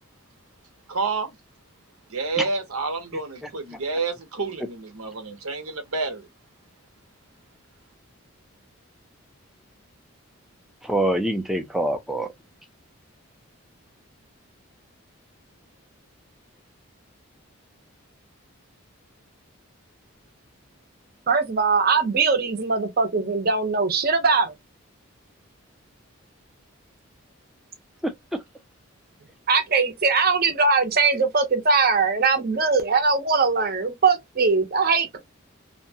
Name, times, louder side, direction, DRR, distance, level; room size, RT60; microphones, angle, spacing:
voice 1, 0.9-1.4 2.1-6.3, right 3 dB, 85° right, 0.8 m, -29 dB
voice 2, 10.8-12.3 28.0-28.4, right 1 dB, ahead, 0.4 m, -25 dB
voice 3, 21.3-24.5 29.5-35.2, right 4 dB, 45° right, 0.6 m, -21 dB
2.7 x 2.1 x 2.6 m
head